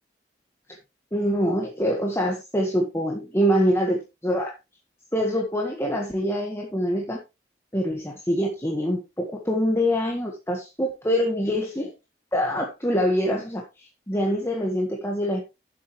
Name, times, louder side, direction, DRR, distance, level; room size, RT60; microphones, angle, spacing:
voice 1, 1.1-4.5 5.1-7.2 7.7-11.9 12.3-15.4, equal, 15° left, 0 dB, 1.6 m, -25 dB
11.5 x 7.7 x 3.2 m, 0.25 s
head